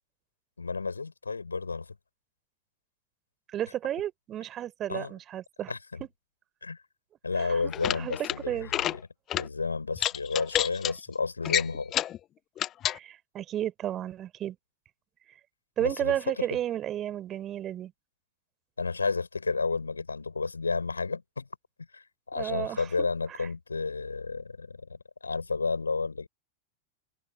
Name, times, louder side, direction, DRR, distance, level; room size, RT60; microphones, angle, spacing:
voice 1, 0.6-1.9 4.9-5.2 5.7-6.0 6.6-6.8 7.2-9.0 9.3-11.9 15.8-16.6 18.8-21.5 21.9-26.3, left 4 dB, 75° left, 4.5 m, -32 dB
voice 2, 3.5-5.7 7.4-7.7 8.0-8.1 8.5-8.7 12.9-14.6 15.8-17.9 22.4-22.9 23.4-23.5, right 11 dB, 30° right, 4.1 m, -32 dB
sound 1, 7.6-8.4 8.6-9.0 9.3-9.5 10.0-10.9 11.4-12.2 12.6-13.0, left 12 dB, 30° left, 0.8 m, -29 dB
figure-of-eight pair, 90°, 0 cm